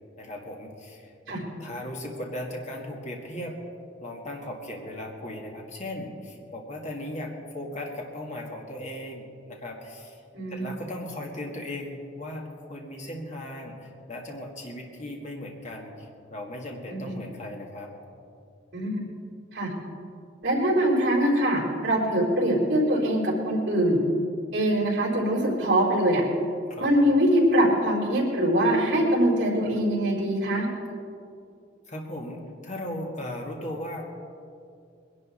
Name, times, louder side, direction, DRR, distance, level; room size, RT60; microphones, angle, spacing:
voice 1, 0.2-3.6 4.0-10.2 10.5-17.9 26.7-26.9 31.9-34.0, left 1 dB, 40° left, 0 dB, 1.8 m, -37 dB
voice 2, 10.3-10.7 16.9-17.0 18.7-19.1 19.5-19.7 20.4-24.0 24.5-26.2 26.8-30.7, right 1 dB, 60° right, -7 dB, 4.0 m, -23 dB
21.5 x 11.0 x 4.3 m, 2.4 s
head